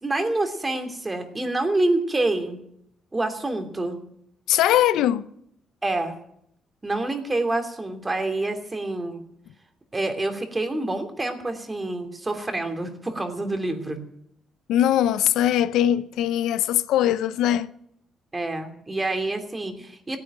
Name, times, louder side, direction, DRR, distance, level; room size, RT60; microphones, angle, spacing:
voice 1, 0.0-2.6 3.1-4.0 5.8-6.1 6.8-9.2 9.9-14.0 18.3-20.2, right 2 dB, 20° right, 2.9 m, -27 dB
voice 2, 4.5-5.3 14.7-17.7, left 11 dB, 85° left, 0.7 m, -21 dB
17.0 x 9.3 x 9.1 m
cardioid pair, 90°, 0 cm